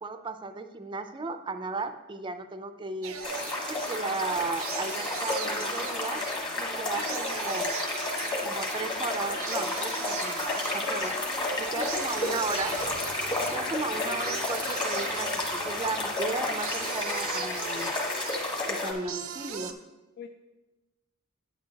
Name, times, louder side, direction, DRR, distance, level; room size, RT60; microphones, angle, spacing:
voice 1, 0.0-3.2 3.7-6.2 6.6-7.7 8.4-10.4 10.7-11.2 11.6-12.8 13.5-17.9 18.7-19.8, right 3 dB, 25° right, 9 dB, 0.5 m, -35 dB
sound 1, 3.0-19.7, right 7 dB, 85° right, 0.6 m, -39 dB
sound 2, 3.2-18.9, left 2 dB, 20° left, 1.3 m, -31 dB
voice 2, 6.9-7.3 11.8-12.4 13.7-14.0 20.2-20.3, left 4 dB, 55° left, 5 dB, 0.4 m, -42 dB
Accelerating revving vroom, 9.6-17.8, left 2 dB, 70° left, 1.7 m, -52 dB
9.2 x 8.8 x 2.9 m, 1.1 s
head